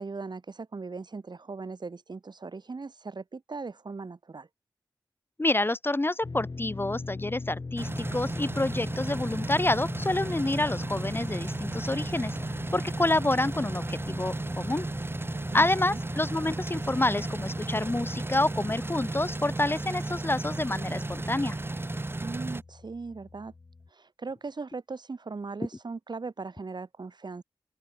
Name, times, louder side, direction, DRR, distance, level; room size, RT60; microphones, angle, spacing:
voice 1, 0.0-4.5 15.5-16.0 22.2-23.5 23.9-27.4, right 4 dB, 60° right, 2.6 m, -39 dB
voice 2, 5.4-12.4 12.7-14.9 15.5-21.6, left 2 dB, 25° left, 1.0 m, -28 dB
sound 1, 6.2-23.9, left 3 dB, 50° left, 2.0 m, -42 dB
sound 2, 7.8-22.6, right 2 dB, 25° right, 1.0 m, -34 dB
open air
cardioid pair, 40°, 9 cm